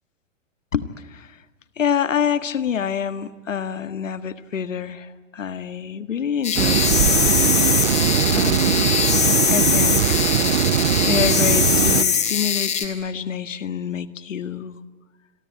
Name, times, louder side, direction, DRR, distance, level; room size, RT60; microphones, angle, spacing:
voice 1, 0.7-1.4 1.8-6.9 8.3-8.9 9.5-10.2 11.1-14.8, left 8 dB, 75° left, 12 dB, 1.8 m, -27 dB
sound 1, 6.4-12.8, left 7 dB, 15° left, 3.5 m, -21 dB
sound 2, 6.6-12.0, right 10 dB, 60° right, 1.2 m, -20 dB
28.0 x 23.0 x 9.2 m, 1.3 s
hypercardioid pair, 120°, 39 cm